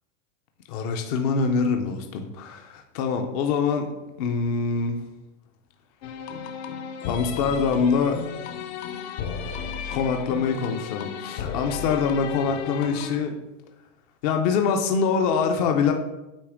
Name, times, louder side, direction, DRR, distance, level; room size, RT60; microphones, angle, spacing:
voice 1, 0.7-3.9 4.2-5.0 7.1-8.2 9.9-13.3 14.2-15.9, left 5 dB, 35° left, 5 dB, 0.4 m, -24 dB
sound 1, 6.0-13.2, left 7 dB, 60° left, 0.8 m, -34 dB
8.4 x 2.8 x 4.8 m, 1.0 s
supercardioid pair, 170°, 37 cm